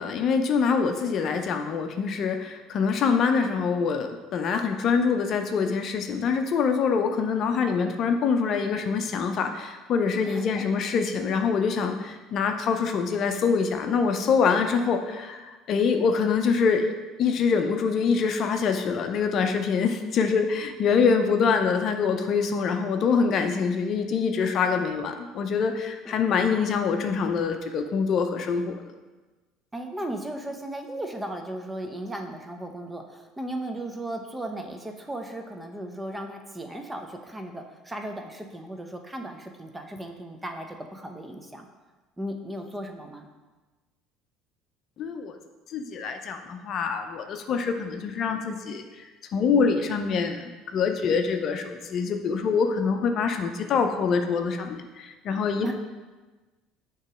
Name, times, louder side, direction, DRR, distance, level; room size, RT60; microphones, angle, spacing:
voice 1, 0.0-16.9 17.2-28.8 45.0-45.4 45.7-55.7, left 5 dB, 55° left, 6 dB, 0.5 m, -25 dB
voice 2, 10.2-10.7 26.0-26.1 29.7-41.7 42.2-43.3 55.6-55.7, right 1 dB, 15° right, 4 dB, 0.8 m, -36 dB
6.4 x 3.0 x 4.8 m, 1.2 s
hypercardioid pair, 75°, 0 cm